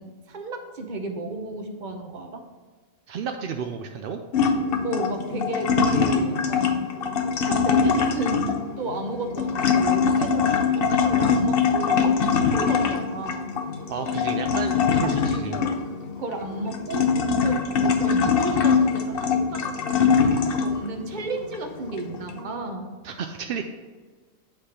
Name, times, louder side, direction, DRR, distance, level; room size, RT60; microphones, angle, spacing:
voice 1, 0.0-2.4 4.8-6.9 7.4-8.5 8.8-13.6 15.0-15.1 15.5-15.8 16.2-17.1 17.4-23.0, right 2 dB, 40° right, 4 dB, 0.8 m, -33 dB
voice 2, 3.1-4.2 13.9-15.6 23.0-23.6, right 6 dB, 70° right, 5 dB, 0.5 m, -32 dB
sound 1, 4.3-20.9 21.4-22.4, left 5 dB, 55° left, 0.7 m, -22 dB
8.9 x 3.3 x 5.7 m, 1.4 s
omnidirectional pair, 1.4 m